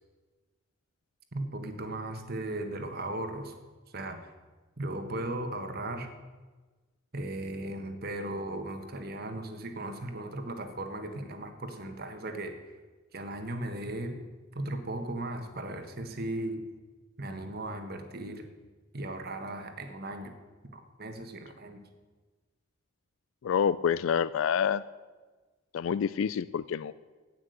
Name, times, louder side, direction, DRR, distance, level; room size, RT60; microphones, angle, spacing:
voice 1, 1.3-3.5 3.9-4.3 4.8-6.1 7.1-12.5 13.1-14.2 14.5-16.6 17.2-18.5 18.9-20.4 20.7-21.8, right 1 dB, 50° right, 6 dB, 1.5 m, -37 dB
voice 2, 23.4-24.8 25.7-26.9, left 7 dB, 75° left, 16 dB, 0.3 m, -27 dB
15.5 x 6.1 x 9.2 m, 1.3 s
head